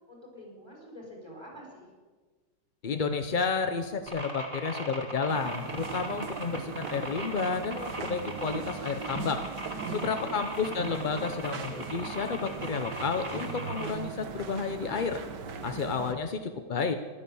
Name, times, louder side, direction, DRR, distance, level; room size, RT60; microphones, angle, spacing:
voice 1, 0.1-1.9 9.8-10.4, equal, 15° left, -2 dB, 5.5 m, -47 dB
voice 2, 2.8-9.4 9.9-15.2 15.6-16.9, left 5 dB, 60° left, 8 dB, 0.5 m, -31 dB
sound 1, 4.1-13.9, right 1 dB, 15° right, 2.4 m, -39 dB
sound 2, 5.3-16.1, right 6 dB, 75° right, 1.7 m, -39 dB
14.5 x 11.5 x 7.0 m, 1.3 s
omnidirectional pair, 1.9 m